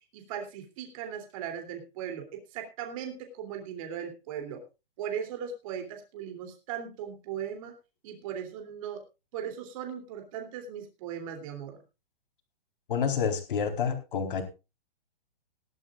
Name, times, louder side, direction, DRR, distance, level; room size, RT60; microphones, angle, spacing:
voice 1, 0.1-4.6 5.0-7.7 8.0-9.0 9.3-11.8, right 8 dB, 35° right, 4 dB, 3.0 m, -38 dB
voice 2, 12.9-14.4, left 6 dB, 60° left, 6 dB, 4.1 m, -28 dB
18.5 x 12.5 x 2.4 m, 0.28 s
hypercardioid pair, 160°, 29 cm